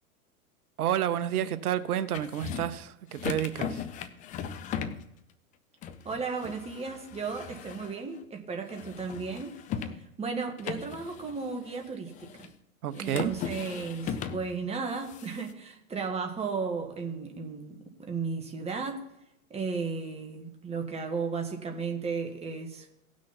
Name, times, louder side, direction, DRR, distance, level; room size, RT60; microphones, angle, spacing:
voice 1, 0.8-3.8 12.8-13.3, right 11 dB, 80° right, 13 dB, 0.8 m, -30 dB
sound 1, 2.1-2.8 3.1-5.1 5.8-8.2 8.7-10.1 10.6-12.5 12.9-14.6 14.9-15.5, left 8 dB, 20° left, 0.5 m, -38 dB
voice 2, 6.0-9.5 10.0-12.5 12.9-19.1 19.5-23.0, right 5 dB, 15° right, 3 dB, 1.6 m, -35 dB
17.5 x 6.3 x 4.1 m, 0.83 s
hypercardioid pair, 125°, 44 cm